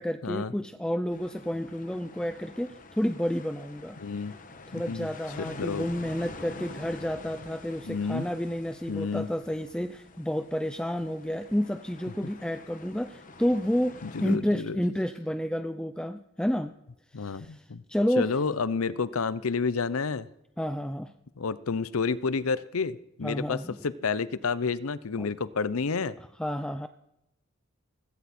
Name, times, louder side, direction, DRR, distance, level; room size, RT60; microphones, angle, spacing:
voice 1, 0.0-4.0 4.7-16.7 17.2-18.3 20.6-21.1 23.2-23.8 25.2-25.3 26.4-26.9, equal, 5° left, 9 dB, 0.5 m, -30 dB
sound 1, 1.1-14.4, left 3 dB, 40° left, 1.2 m, -47 dB
voice 2, 4.0-4.3 4.7-5.1 5.4-5.9 7.9-8.2 8.9-9.3 14.0-14.8 17.1-17.8 18.2-20.3 21.4-26.1, left 5 dB, 85° left, 17 dB, 0.7 m, -30 dB
17.0 x 16.5 x 4.3 m, 0.87 s
head